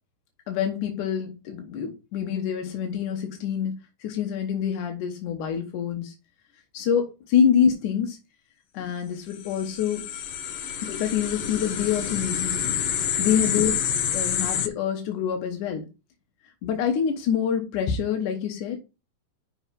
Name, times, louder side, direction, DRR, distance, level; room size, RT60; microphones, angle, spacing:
voice 1, 0.5-3.7 4.0-6.1 6.7-8.2 8.7-10.0 10.8-12.9 13.2-13.8 14.1-15.8 16.6-18.8, left 8 dB, 80° left, 4 dB, 2.7 m, -26 dB
sound 1, 9.3-14.7, left 8 dB, 65° left, 1.5 m, -28 dB
5.8 x 5.7 x 6.0 m, 0.28 s
omnidirectional pair, 3.5 m